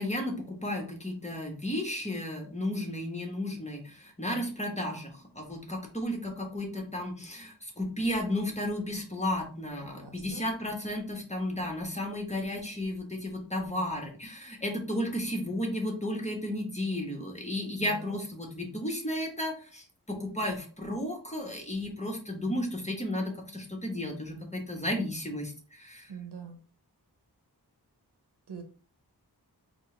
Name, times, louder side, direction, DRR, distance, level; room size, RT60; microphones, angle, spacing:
voice 1, 0.0-26.1, left 1 dB, 15° left, 1 dB, 1.2 m, -33 dB
voice 2, 10.0-10.5 17.8-18.2 26.1-26.6 28.5-28.6, right 5 dB, 85° right, 5 dB, 0.7 m, -43 dB
4.4 x 2.4 x 3.2 m, 0.39 s
wide cardioid pair, 45°, 39 cm